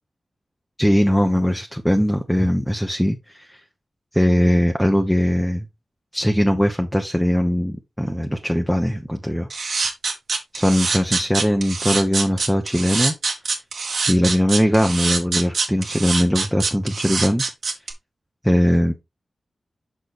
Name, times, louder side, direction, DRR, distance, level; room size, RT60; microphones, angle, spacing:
voice 1, 0.8-3.6 4.1-5.7 6.1-9.5 10.5-13.1 14.1-17.4 18.5-18.9, equal, ahead, 1.0 m, -20 dB
sound 1, 9.5-17.9, right 4 dB, 80° right, 1.7 m, -24 dB
6.3 x 6.2 x 3.4 m
wide cardioid pair, 85°, 0 cm